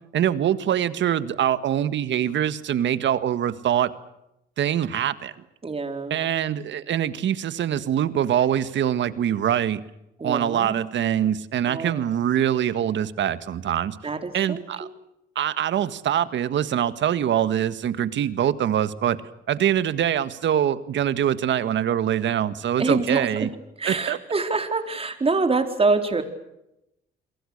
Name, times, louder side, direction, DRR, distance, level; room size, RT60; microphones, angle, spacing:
voice 1, 0.1-3.9 4.6-5.3 6.1-9.8 10.2-14.0 14.3-14.9 15.4-19.2 19.5-23.5 23.9-24.2, right 10 dB, 70° right, 13 dB, 1.7 m, -24 dB
voice 2, 5.6-6.2 10.2-10.8 11.7-12.1 14.0-14.9 22.8-23.5 23.8-26.2, right 3 dB, 30° right, 6 dB, 4.3 m, -25 dB
29.5 x 23.0 x 6.7 m, 0.86 s
cardioid pair, 90°, 20 cm